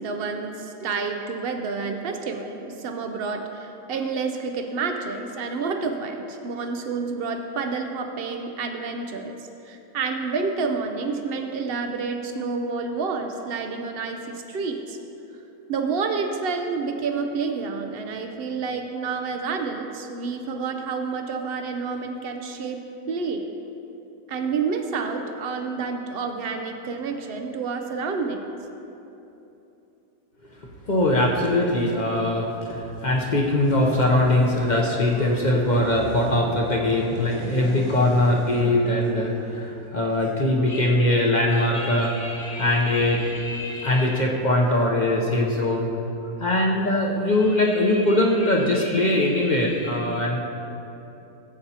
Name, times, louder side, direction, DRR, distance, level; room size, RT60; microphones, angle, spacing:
voice 1, 0.0-15.0 15.7-22.8 23.1-23.4 24.3-28.4, right 4 dB, 80° right, 5 dB, 0.5 m, -29 dB
voice 2, 30.9-45.9 46.4-50.4, left 1 dB, 40° left, -1 dB, 0.7 m, -21 dB
sound 1, 33.6-36.4 36.8-38.7, left 1 dB, 75° left, 2.7 m, -38 dB
14.5 x 8.0 x 2.8 m, 2.9 s
omnidirectional pair, 1.7 m